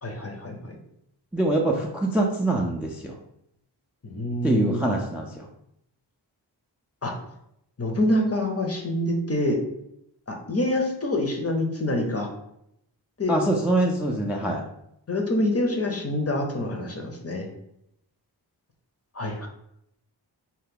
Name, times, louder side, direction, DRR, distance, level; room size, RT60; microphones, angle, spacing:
voice 1, 0.0-0.8 4.0-4.8 7.0-7.1 7.8-9.6 10.3-12.3 13.2-13.4 15.1-17.5 19.1-19.5, left 1 dB, 30° left, 2 dB, 0.6 m, -26 dB
voice 2, 1.3-3.1 4.4-5.5 13.3-14.6, right 2 dB, 5° right, 0 dB, 0.3 m, -24 dB
2.7 x 2.1 x 3.7 m, 0.78 s
wide cardioid pair, 50°, 46 cm